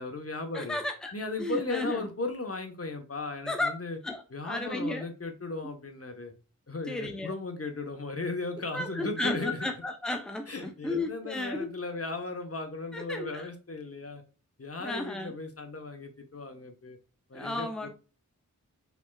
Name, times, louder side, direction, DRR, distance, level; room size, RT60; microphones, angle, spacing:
voice 1, 0.0-0.8 1.1-4.0 4.3-6.3 6.7-9.6 10.5-14.2 14.6-17.0 17.3-17.9, left 3 dB, 45° left, 5 dB, 1.2 m, -36 dB
voice 2, 0.5-1.1 1.4-2.1 3.5-3.7 4.0-5.0 6.9-7.3 8.7-11.7 12.9-13.5 14.8-15.3 17.3-17.9, left 2 dB, ahead, 4 dB, 0.8 m, -33 dB
5.9 x 3.5 x 2.4 m, 0.34 s
wide cardioid pair, 75°, 32 cm